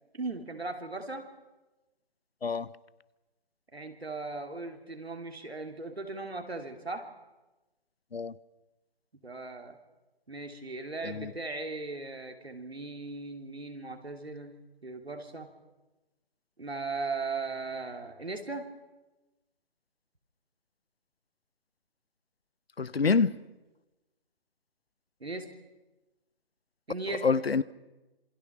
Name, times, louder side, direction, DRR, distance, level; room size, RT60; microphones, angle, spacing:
voice 1, 0.2-1.2 3.7-7.1 9.2-9.8 10.3-14.5 14.8-15.5 16.6-18.6 25.2-25.5 26.9-27.3, right 3 dB, 80° right, 3.1 m, -38 dB
voice 2, 22.8-23.3 27.2-27.6, left 5 dB, 75° left, 0.9 m, -26 dB
27.0 x 22.5 x 6.1 m
figure-of-eight pair, 145°, 30 cm